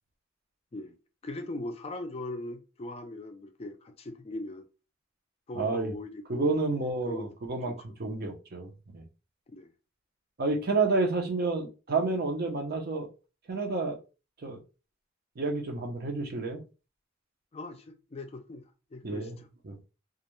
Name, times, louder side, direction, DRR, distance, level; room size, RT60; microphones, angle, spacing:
voice 1, 1.2-4.7 5.5-7.3 7.7-7.8 9.5-9.7 17.5-18.6 18.9-19.5, left 2 dB, 30° left, 0.4 m, -40 dB
voice 2, 5.5-5.9 6.3-9.0 10.4-13.1 13.5-14.0 14.4-14.6 15.4-16.6 19.0-19.4 19.6-19.9, right 3 dB, 55° right, 0.6 m, -30 dB
2.3 x 2.1 x 3.0 m
head